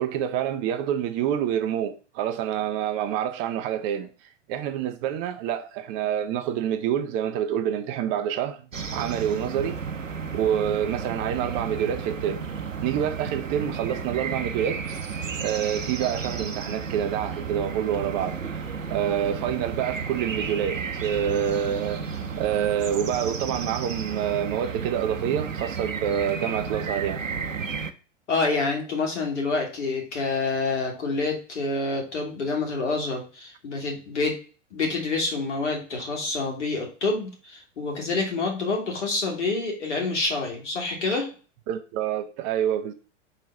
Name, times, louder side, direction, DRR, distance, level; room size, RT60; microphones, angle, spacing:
voice 1, 0.0-8.6 8.9-9.8 10.3-12.5 12.8-14.8 15.4-18.6 18.9-22.0 22.4-27.2 41.7-42.9, right 9 dB, 30° right, 0.5 m, -27 dB
sound 1, 8.7-27.9, right 5 dB, 90° right, 0.7 m, -33 dB
voice 2, 28.3-34.4 34.7-41.3, left 3 dB, 65° left, 2.4 m, -27 dB
4.6 x 3.8 x 5.3 m
figure-of-eight pair, 95°, 38 cm